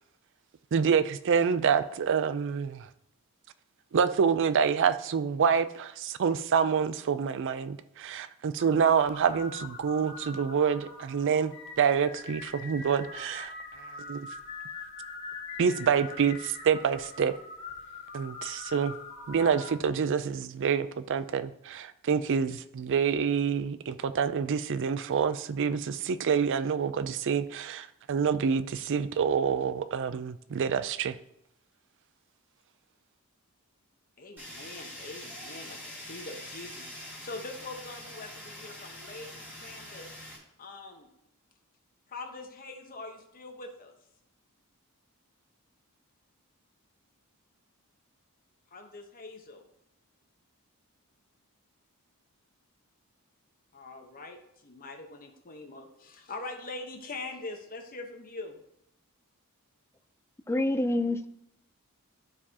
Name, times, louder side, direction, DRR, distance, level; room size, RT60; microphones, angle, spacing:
voice 1, 0.7-2.9 3.9-13.5 14.1-14.3 15.6-17.3 18.1-18.9 19.3-31.2, right 6 dB, 55° right, 0.4 m, -27 dB
sound 1, 8.6-19.7, left 4 dB, 60° left, 1.6 m, -43 dB
voice 2, 34.2-36.9 37.2-40.1 40.6-41.1 42.1-43.9 48.7-49.7 53.7-58.6, left 3 dB, 40° left, 1.0 m, -43 dB
Fire, 34.4-40.4, left 1 dB, 10° right, 2.0 m, -44 dB
voice 3, 60.5-61.3, left 1 dB, 10° left, 0.4 m, -27 dB
12.0 x 4.7 x 2.8 m
head